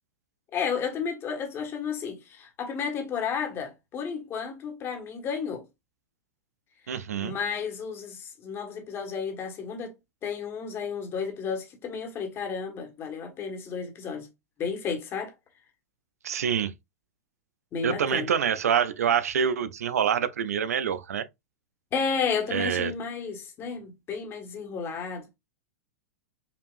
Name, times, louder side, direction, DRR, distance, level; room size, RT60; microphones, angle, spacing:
voice 1, 0.5-5.6 6.9-9.9 10.2-14.3 14.6-15.3 17.7-18.3 21.9-25.4, left 6 dB, 30° left, 1.5 m, -32 dB
voice 2, 6.9-7.3 16.2-16.7 17.8-21.2 22.5-22.9, right 8 dB, 85° right, 0.5 m, -26 dB
5.2 x 2.7 x 2.5 m
hypercardioid pair, 125°, 8 cm